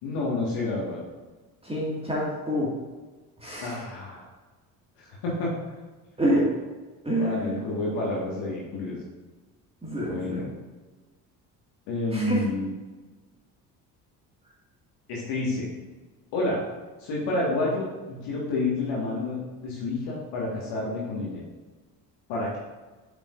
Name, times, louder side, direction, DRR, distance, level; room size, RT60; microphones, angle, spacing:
voice 1, 0.0-1.0 3.6-4.3 5.2-5.5 7.2-9.0 10.0-10.5 11.9-12.7 15.1-15.7 16.3-16.6 17.0-21.4 22.3-22.6, left 2 dB, 55° left, -4 dB, 1.8 m, -29 dB
voice 2, 1.6-2.7 3.4-3.8 6.2-6.5 7.0-7.6 9.8-10.5 12.1-12.4, equal, 10° right, -6 dB, 2.0 m, -27 dB
8.9 x 5.7 x 2.6 m, 1.3 s
figure-of-eight pair, 55°, 49 cm